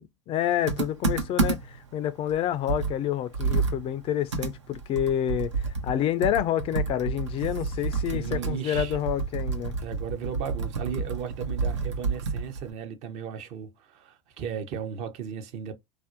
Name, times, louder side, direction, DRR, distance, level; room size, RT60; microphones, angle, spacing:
voice 1, 0.0-9.7, left 11 dB, 40° left, 0.3 m, -28 dB
Computer keyboard, 0.7-1.8 2.3-2.4 2.7-6.0 6.2-12.7, right 4 dB, 90° right, 0.7 m, -29 dB
voice 2, 7.8-9.0 9.8-15.7, right 8 dB, 50° right, 0.7 m, -36 dB
2.5 x 2.1 x 2.4 m
hypercardioid pair, 85°, 14 cm